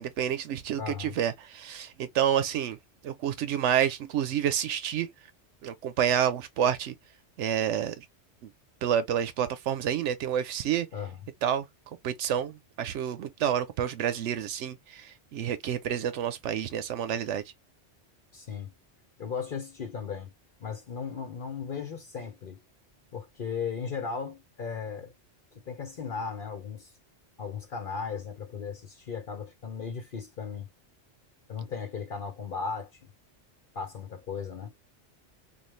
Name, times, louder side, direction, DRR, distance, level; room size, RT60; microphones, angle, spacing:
voice 1, 0.0-2.8 3.0-5.1 5.6-6.9 7.4-8.0 8.4-8.5 8.8-10.9 11.4-11.7 12.0-17.4, right 9 dB, 85° right, 1.0 m, -29 dB
voice 2, 0.8-1.1 10.9-11.2 18.3-18.7 19.2-20.3 20.6-22.6 23.1-25.1 25.7-26.9 27.4-30.7 31.5-32.9 33.7-34.7, left 6 dB, 50° left, 0.9 m, -36 dB
3.2 x 2.3 x 3.1 m
omnidirectional pair, 1.2 m